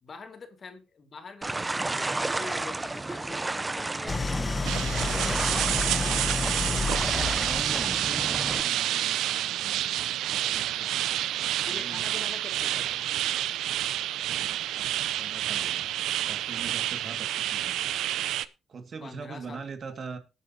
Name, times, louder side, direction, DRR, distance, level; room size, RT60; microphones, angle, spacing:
voice 1, 0.0-6.0 11.6-13.1 19.0-19.6, left 4 dB, 40° left, 7 dB, 2.4 m, -45 dB
sound 1, 1.4-8.6, right 2 dB, 20° right, 0.6 m, -32 dB
Idling, 4.1-8.3, left 3 dB, 25° left, 1.2 m, -30 dB
voice 2, 4.3-6.3 6.8-10.0 10.4-10.9 11.7-12.1 14.2-14.9 15.2-15.9 16.3-18.0 18.7-20.2, right 5 dB, 50° right, 9 dB, 2.0 m, -43 dB
sound 2, 4.6-18.5, right 13 dB, 85° right, 0.6 m, -29 dB
19.5 x 8.3 x 2.8 m, 0.28 s
cardioid pair, 90°, 0 cm